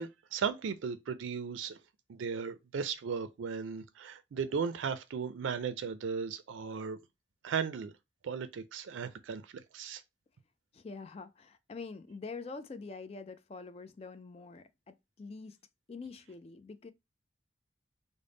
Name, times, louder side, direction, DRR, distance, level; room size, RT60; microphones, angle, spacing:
voice 1, 0.0-1.8 2.1-7.0 7.4-7.9 8.2-10.0, right 6 dB, 90° right, 0.4 m, -36 dB
voice 2, 10.7-15.6 15.9-16.9, left 4 dB, 30° left, 0.3 m, -45 dB
3.4 x 2.1 x 3.8 m
head